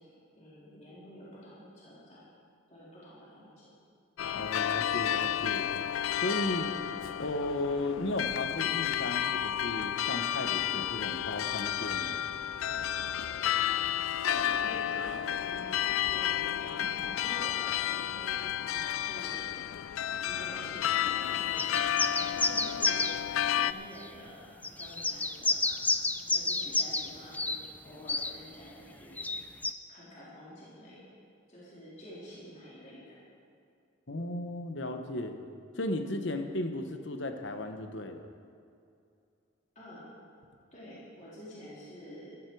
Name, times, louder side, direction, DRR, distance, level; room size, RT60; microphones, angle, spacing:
voice 1, 0.3-2.2 2.7-3.7 14.2-15.8 16.1-19.5 20.2-22.0 22.3-24.5 24.8-25.8 26.3-27.6 27.8-29.1 29.9-31.0 31.5-33.2 39.8-40.0 40.7-42.3, equal, 35° left, -9 dB, 3.7 m, -48 dB
sound 1, 4.2-23.7, left 10 dB, 90° left, 0.4 m, -31 dB
voice 2, 4.3-5.7 6.2-6.7 7.2-12.2 34.1-35.4 35.8-38.3, left 2 dB, 65° left, 6 dB, 1.1 m, -35 dB
sound 2, 21.6-23.2 24.0-24.1 24.6-27.1 27.3-27.6 28.1-28.3 29.2-29.7, left 3 dB, 10° left, 0.3 m, -30 dB
15.0 x 14.0 x 4.8 m, 2.5 s
head